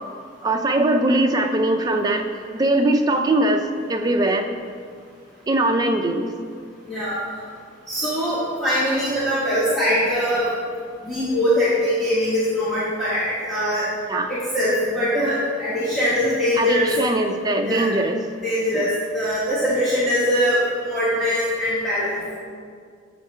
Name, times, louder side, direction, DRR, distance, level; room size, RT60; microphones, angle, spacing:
voice 1, 0.4-2.3 2.5-4.4 5.5-6.3 14.1-14.3 16.6-18.3 18.7-18.9, right 1 dB, 20° right, 4 dB, 0.4 m, -21 dB
voice 2, 6.9-7.2 7.9-10.5 11.0-13.8 14.3-16.9 17.6-17.9 18.4-18.9 19.1-20.6 20.9-22.2, equal, ahead, -13 dB, 1.1 m, -22 dB
7.7 x 3.6 x 4.3 m, 2.1 s
head